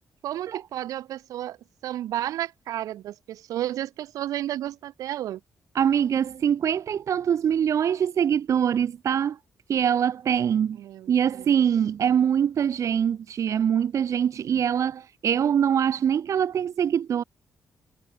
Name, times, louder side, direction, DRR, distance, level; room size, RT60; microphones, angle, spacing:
voice 1, 0.2-1.6 1.8-5.4 10.8-11.5, right 12 dB, 90° right, 2.6 m, -32 dB
voice 2, 5.7-9.4 9.7-10.8 11.1-17.2, right 8 dB, 65° right, 2.6 m, -23 dB
cardioid pair, 90°, 6 cm